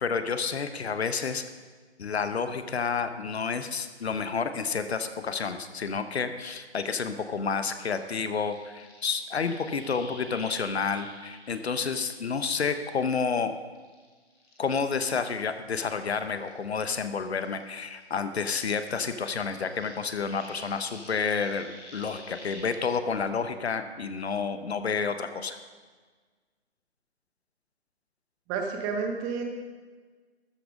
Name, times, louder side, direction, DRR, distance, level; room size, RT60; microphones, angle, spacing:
voice 1, 0.0-1.4 2.0-13.5 14.6-25.6, left 5 dB, 70° left, 10 dB, 1.1 m, -30 dB
sound 1, 8.0-13.4 13.8-17.1 17.4-22.8, left 1 dB, 15° left, 1.9 m, -50 dB
voice 2, 28.5-29.4, right 5 dB, 10° right, 3 dB, 0.8 m, -30 dB
13.0 x 8.6 x 5.2 m, 1.4 s
hypercardioid pair, 150°, 33 cm